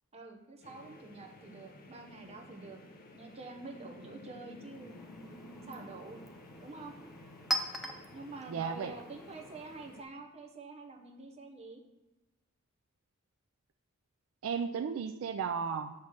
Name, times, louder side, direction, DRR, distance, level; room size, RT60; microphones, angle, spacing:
voice 1, 0.1-2.8 3.1-5.0 5.7-6.2 6.6-6.9 8.1-11.8, right 3 dB, 30° right, 2 dB, 0.8 m, -47 dB
sound 1, 0.6-10.0, left 1 dB, 40° left, 0.6 m, -53 dB
Chink clink, 4.6-10.1, right 1 dB, ahead, 0.4 m, -42 dB
voice 2, 8.5-9.0 14.4-15.9, right 6 dB, 65° right, 7 dB, 0.3 m, -34 dB
7.2 x 3.1 x 6.0 m, 1.0 s
head